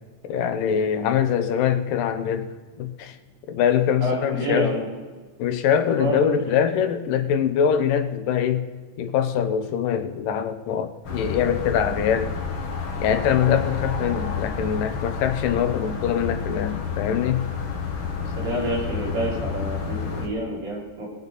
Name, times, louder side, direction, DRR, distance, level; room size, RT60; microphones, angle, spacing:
voice 1, 0.2-2.5 2.8-3.2 3.5-4.7 5.4-8.6 9.0-12.3 13.0-17.5, left 8 dB, 85° left, 10 dB, 2.7 m, -23 dB
voice 2, 4.0-4.8 6.0-6.4 18.4-21.1, equal, 85° right, -4 dB, 6.1 m, -27 dB
sound 1, 11.0-20.3, left 5 dB, 45° left, 1.9 m, -30 dB
21.0 x 9.2 x 4.1 m, 1.4 s
omnidirectional pair, 3.8 m